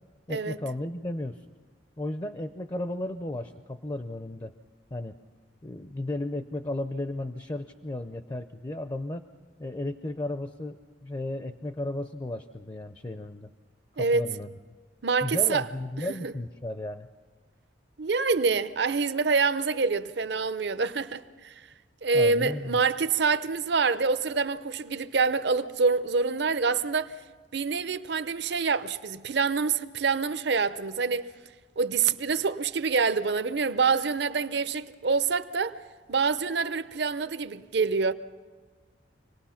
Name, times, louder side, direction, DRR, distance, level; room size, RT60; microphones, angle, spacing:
voice 1, 0.3-1.4 2.0-4.5 4.9-5.2 5.6-9.2 9.6-13.5 13.9-14.5 15.2-17.1 22.1-22.8, left 1 dB, 25° left, 0.5 m, -34 dB
voice 2, 15.0-15.7 16.1-16.3 18.0-21.5 22.0-27.1 27.5-31.3 31.8-35.8 36.1-38.1, right 4 dB, 65° right, 0.7 m, -26 dB
26.0 x 19.0 x 5.8 m
head